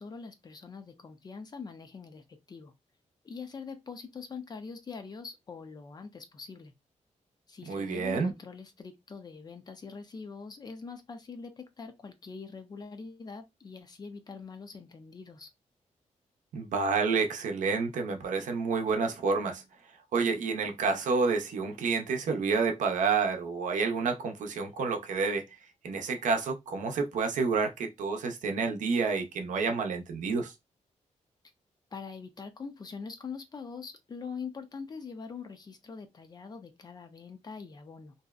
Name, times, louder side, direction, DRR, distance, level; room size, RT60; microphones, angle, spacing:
voice 1, 0.0-2.7 3.2-6.7 7.5-15.5 31.9-38.1, left 5 dB, 35° left, 0.4 m, -43 dB
voice 2, 7.7-8.3 16.5-19.6 20.1-25.4 25.8-30.5, right 4 dB, 85° right, 0.6 m, -29 dB
2.6 x 2.0 x 2.3 m
wide cardioid pair, 150°, 13 cm